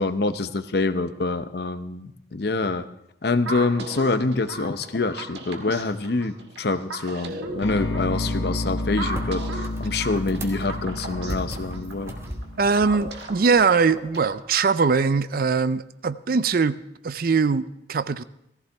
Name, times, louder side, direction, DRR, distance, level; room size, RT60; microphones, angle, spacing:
voice 1, 0.0-2.9 3.2-12.1, left 3 dB, 60° left, 11 dB, 0.7 m, -26 dB
sound 1, 3.5-14.5, right 2 dB, 70° right, 1.5 m, -37 dB
sound 2, 7.2-14.2, equal, 15° right, 1.2 m, -40 dB
sound 3, 7.6-13.6, left 1 dB, 75° left, 1.7 m, -31 dB
voice 2, 12.6-16.8 17.0-18.2, right 5 dB, 50° right, 15 dB, 0.4 m, -21 dB
17.5 x 14.5 x 3.4 m, 0.79 s
head